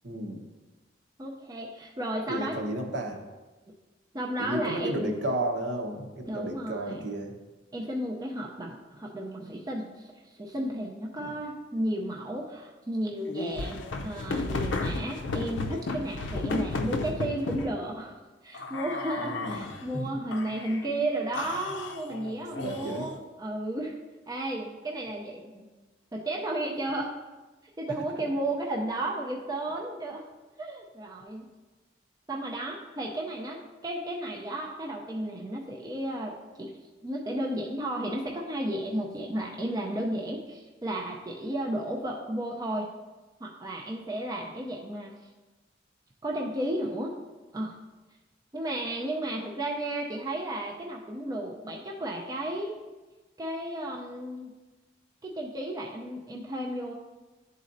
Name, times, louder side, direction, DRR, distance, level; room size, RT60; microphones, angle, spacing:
voice 1, 0.0-0.4 2.3-3.2 4.4-7.3 11.2-11.3 19.2-20.2 22.6-23.1, right 1 dB, 60° right, 2 dB, 0.9 m, -33 dB
voice 2, 1.2-2.7 4.1-5.1 6.3-7.0 7.7-18.2 18.4-24.0 24.3-25.6 26.1-27.1 27.8-30.2 30.6-31.5 32.3-42.9 43.4-45.1 46.2-47.1 47.5-47.8 48.5-52.8 53.4-54.5 55.2-56.9, right 1 dB, 20° right, -2 dB, 0.5 m, -33 dB
sound 1, 13.3-17.7 18.5-19.8 20.3-20.9 21.3-23.2, left 3 dB, 70° left, 0.5 m, -33 dB
11.0 x 4.1 x 2.6 m, 1.2 s
head